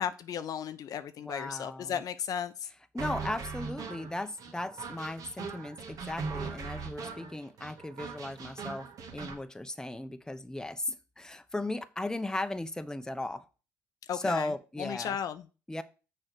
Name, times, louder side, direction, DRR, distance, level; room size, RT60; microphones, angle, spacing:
voice 1, 0.0-2.7 14.1-14.5 14.8-15.4, left 8 dB, 60° left, 0.6 m, -35 dB
voice 2, 1.2-2.0 2.9-13.4 14.1-15.2 15.7-15.8, left 1 dB, 10° left, 0.8 m, -36 dB
sound 1, 3.0-9.4, right 4 dB, 55° right, 1.5 m, -40 dB
6.5 x 4.4 x 6.2 m
supercardioid pair, 65°, 7 cm